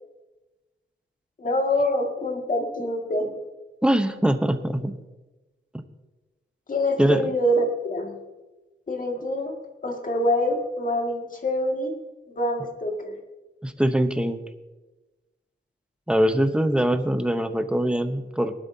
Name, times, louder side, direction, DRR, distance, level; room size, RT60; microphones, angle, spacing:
voice 1, 1.4-3.3 6.7-8.2 8.9-12.0 12.3-13.2, left 1 dB, 45° left, 2 dB, 2.1 m, -25 dB
voice 2, 3.8-5.0 7.0-7.2 13.6-14.4 16.1-18.5, right 1 dB, 5° right, 8 dB, 0.8 m, -22 dB
19.5 x 12.0 x 2.8 m, 1.1 s
wide cardioid pair, 130°, 20 cm